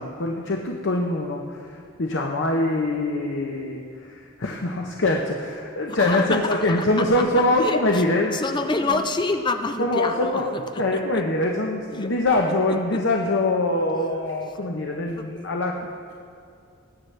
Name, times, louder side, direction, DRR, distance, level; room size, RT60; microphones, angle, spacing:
voice 1, 0.0-8.4 9.8-15.8, left 2 dB, 60° left, 1 dB, 0.8 m, -24 dB
voice 2, 5.9-8.0 8.3-11.2 11.9-12.1 12.9-13.0 15.0-15.5, left 3 dB, 20° left, 7 dB, 0.4 m, -28 dB
20.0 x 9.5 x 3.3 m, 2.5 s
head